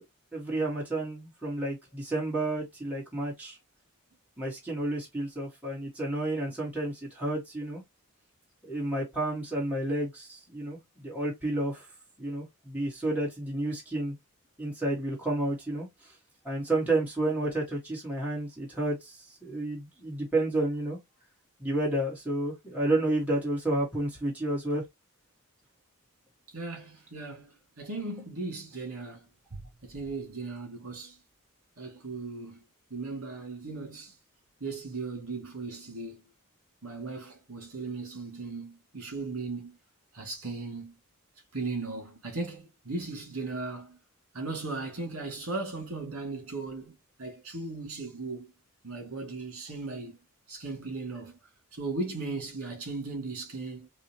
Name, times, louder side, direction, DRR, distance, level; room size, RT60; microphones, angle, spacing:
voice 1, 0.3-3.6 4.4-7.8 8.6-11.9 12.2-14.1 14.6-15.9 16.4-21.0 21.6-24.8, right 2 dB, 5° right, 1.8 m, -31 dB
voice 2, 26.5-29.3 29.5-31.2 31.8-32.6 32.9-34.1 34.6-36.2 36.8-39.8 40.1-41.0 41.5-44.0 44.3-48.5 48.8-50.2 50.5-51.4 51.7-53.9, right 3 dB, 65° right, 2.2 m, -37 dB
4.8 x 2.7 x 2.9 m
head